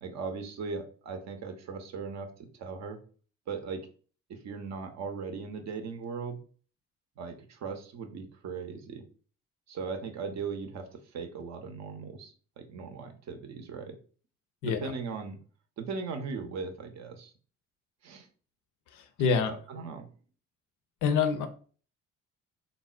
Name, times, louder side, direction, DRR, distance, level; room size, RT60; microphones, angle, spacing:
voice 1, 0.0-2.3 2.6-3.0 3.5-3.8 4.3-6.4 7.2-9.0 9.7-10.8 11.1-14.0 14.6-15.4 15.8-17.3 18.0-18.3 19.4-20.1, right 5 dB, 45° right, 6 dB, 0.6 m, -38 dB
voice 2, 18.9-19.5 21.0-21.5, left 6 dB, 55° left, 8 dB, 0.6 m, -26 dB
3.6 x 2.0 x 2.4 m, 0.40 s
figure-of-eight pair, 50°, 38 cm